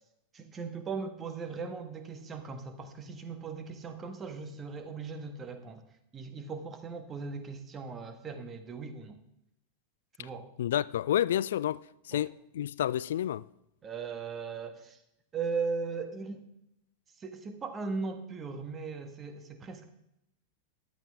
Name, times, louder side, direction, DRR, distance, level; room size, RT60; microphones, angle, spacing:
voice 1, 0.3-5.8 6.1-9.2 10.2-10.5 12.1-12.3 13.8-15.0 15.3-16.4 17.2-19.9, right 4 dB, 20° right, 1.5 m, -38 dB
voice 2, 10.6-13.4, left 11 dB, 60° left, 0.3 m, -30 dB
14.0 x 11.5 x 3.5 m
figure-of-eight pair, 90°, 0 cm